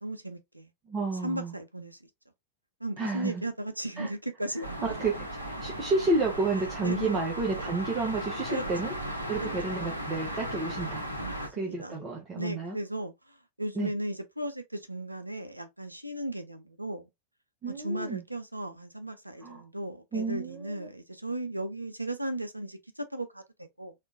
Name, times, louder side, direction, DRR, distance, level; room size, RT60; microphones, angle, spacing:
voice 1, 0.0-0.7 1.2-2.0 2.8-4.8 6.8-7.2 8.5-8.6 9.4-9.5 11.2-12.0 12.3-17.1 17.7-23.9, right 1 dB, 85° right, 0.4 m, -36 dB
voice 2, 0.9-1.5 3.0-3.4 4.0-4.1 4.8-8.9 9.3-11.1 11.5-12.8 13.7-13.9 17.6-18.2 19.4-19.6 20.1-20.9, right 3 dB, 25° right, 0.9 m, -31 dB
sound 1, 4.6-11.5, equal, 90° left, 0.7 m, -36 dB
3.6 x 2.4 x 2.5 m
figure-of-eight pair, 90°, 0 cm